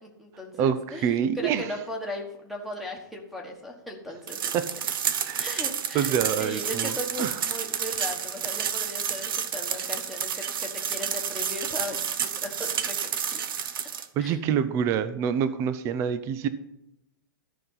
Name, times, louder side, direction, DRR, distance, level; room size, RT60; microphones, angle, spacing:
voice 1, 0.0-4.5 5.4-13.4 14.2-14.4, left 1 dB, ahead, 2 dB, 1.4 m, -37 dB
voice 2, 0.6-1.7 4.5-4.7 5.2-5.5 5.9-6.9 7.2-7.4 14.2-16.5, right 8 dB, 25° right, 13 dB, 0.5 m, -26 dB
sound 1, 4.3-14.1, right 8 dB, 70° right, 0.9 m, -30 dB
13.5 x 5.4 x 5.6 m, 0.84 s
hypercardioid pair, 155°, 12 cm